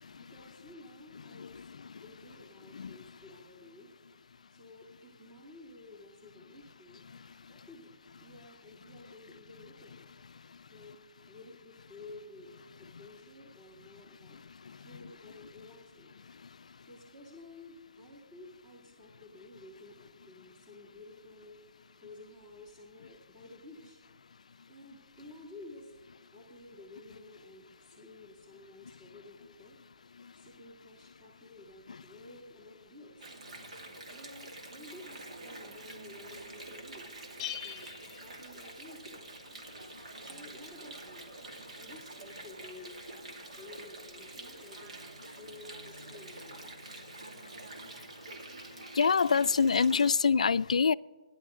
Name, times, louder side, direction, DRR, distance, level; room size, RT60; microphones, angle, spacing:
voice 1, 0.2-1.7 2.0-3.9 4.5-7.0 7.5-7.9 8.2-10.0 10.7-10.9 11.3-12.5 12.8-14.4 14.8-16.1 16.9-21.6 22.0-24.0 24.7-25.9 26.3-29.8 30.3-33.3 34.1-37.1 37.6-37.9 38.2-39.3 40.2-41.3 41.8-46.7, left 2 dB, 20° right, 2.9 m, -52 dB
voice 2, 1.3-1.6 2.7-3.0 48.9-50.9, left 5 dB, 80° left, 0.4 m, -25 dB
Water, 33.2-50.1, right 2 dB, 70° right, 2.5 m, -47 dB
Bell, 37.4-39.2, left 11 dB, 25° left, 0.7 m, -43 dB
29.5 x 11.0 x 3.8 m
hypercardioid pair, 160°, 4 cm